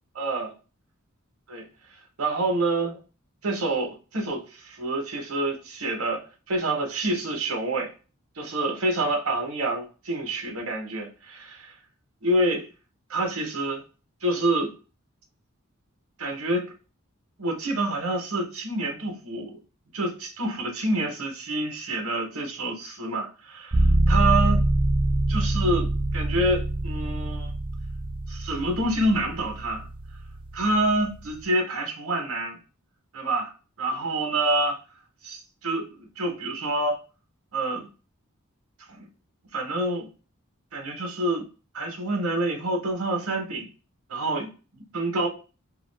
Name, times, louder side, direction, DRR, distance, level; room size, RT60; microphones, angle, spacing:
voice 1, 0.2-0.5 1.5-1.6 2.2-2.9 3.4-7.9 8.4-11.7 12.2-12.7 13.1-13.8 14.2-14.7 16.2-16.7 17.4-19.6 19.9-24.6 25.3-27.5 28.3-29.9 30.5-32.6 33.1-33.5 33.8-34.8 35.2-37.0 37.5-37.9 38.9-39.0 39.5-40.1 40.7-41.4 41.7-43.7 44.1-45.3, right 2 dB, 80° right, 0.8 m, -27 dB
sound 1, 23.7-31.5, right 1 dB, 25° right, 0.4 m, -25 dB
2.4 x 2.3 x 3.3 m
head